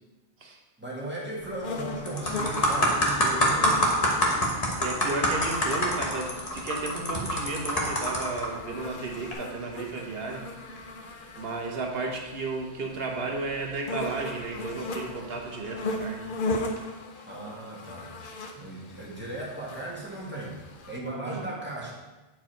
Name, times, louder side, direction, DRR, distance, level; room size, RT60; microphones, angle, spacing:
voice 1, 0.8-3.7 17.3-18.1 18.5-20.6 20.9-21.9, right 1 dB, 10° right, -5 dB, 1.6 m, -36 dB
sound 1, 1.4-1.7 2.1-8.5 9.1-9.3, equal, 35° left, 1.3 m, -25 dB
sound 2, 1.6-21.0, left 2 dB, 50° left, 0.8 m, -38 dB
voice 2, 4.8-10.7 11.4-16.3 21.2-21.5, right 3 dB, 60° right, 2 dB, 1.1 m, -33 dB
8.6 x 4.7 x 4.5 m, 1.1 s
omnidirectional pair, 1.2 m